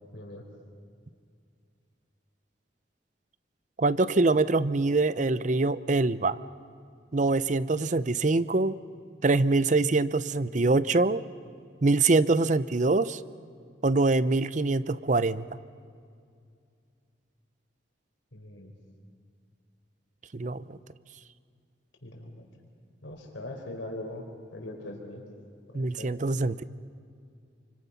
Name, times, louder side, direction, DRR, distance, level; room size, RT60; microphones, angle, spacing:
voice 1, 0.1-0.4 18.3-18.7 22.0-22.4 23.0-24.2 24.5-25.2 25.7-26.1, left 1 dB, 85° left, 2 dB, 4.5 m, -41 dB
voice 2, 3.8-6.4 7.1-8.8 9.2-11.2 11.8-13.2 13.8-15.4 20.3-20.8 25.7-26.6, right 3 dB, 40° right, 16 dB, 0.6 m, -24 dB
28.5 x 25.5 x 5.7 m, 2.3 s
head